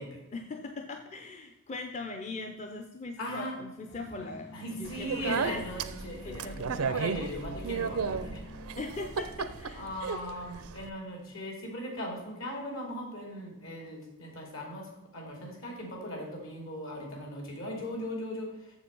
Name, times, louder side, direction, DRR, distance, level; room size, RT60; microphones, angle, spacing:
voice 1, 0.3-5.6 6.2-6.9 8.8-9.9, left 3 dB, 30° left, 5 dB, 0.6 m, -40 dB
voice 2, 3.2-3.5 4.5-6.5 6.9-8.4 9.7-18.8, equal, 70° left, 0 dB, 3.0 m, -39 dB
sound 1, 3.9-9.6, left 2 dB, 50° left, 2.2 m, -48 dB
Speech, 4.9-10.9, right 5 dB, 85° right, 0.5 m, -34 dB
7.2 x 7.1 x 5.4 m, 0.98 s
head